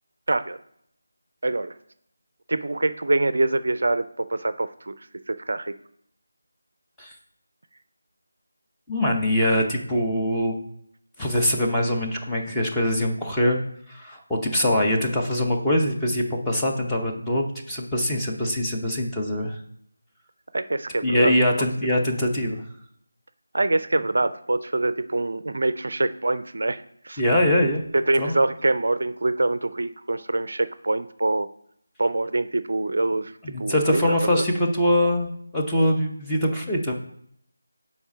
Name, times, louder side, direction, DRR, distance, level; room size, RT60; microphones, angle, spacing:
voice 1, 1.4-1.7 2.5-5.7 20.5-21.3 23.5-27.2 27.9-31.5 32.0-33.3 33.6-34.4, right 2 dB, 55° right, 13 dB, 0.4 m, -25 dB
voice 2, 8.9-10.6 11.2-13.6 13.9-19.6 21.0-22.6 27.2-27.8 28.2-28.4 33.4-36.9, left 1 dB, 5° left, -5 dB, 0.7 m, -23 dB
7.1 x 4.3 x 5.1 m, 0.71 s
figure-of-eight pair, 160°, 0 cm